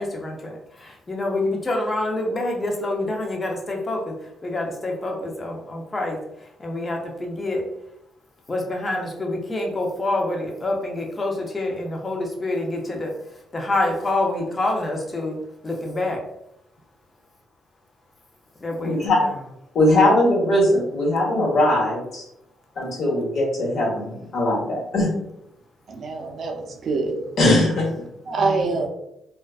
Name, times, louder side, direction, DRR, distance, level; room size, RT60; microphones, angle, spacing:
voice 1, 0.0-7.6 8.5-15.4 15.6-16.2 18.6-19.3 28.4-28.8, left 2 dB, 30° left, 1 dB, 0.6 m, -27 dB
voice 2, 18.8-19.2 19.7-22.2 22.7-25.1 27.4-27.9, left 1 dB, 60° left, -4 dB, 1.1 m, -20 dB
voice 3, 25.9-27.2 28.3-28.9, right 3 dB, 55° right, 1 dB, 0.5 m, -25 dB
2.4 x 2.2 x 2.3 m, 0.80 s
cardioid pair, 90°, 0 cm